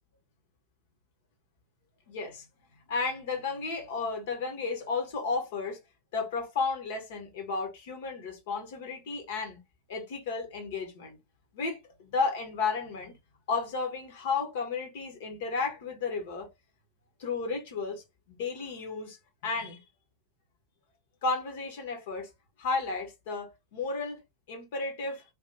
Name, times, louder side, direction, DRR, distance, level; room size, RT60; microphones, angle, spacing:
voice 1, 2.1-2.5 2.9-5.8 6.1-9.6 9.9-11.2 11.5-13.2 13.5-16.5 17.2-19.2 19.4-19.8 21.2-22.3 22.6-24.2 24.5-25.2, left 4 dB, 55° left, 1.2 m, -33 dB
3.5 x 2.6 x 2.8 m
figure-of-eight pair, 90°, 0 cm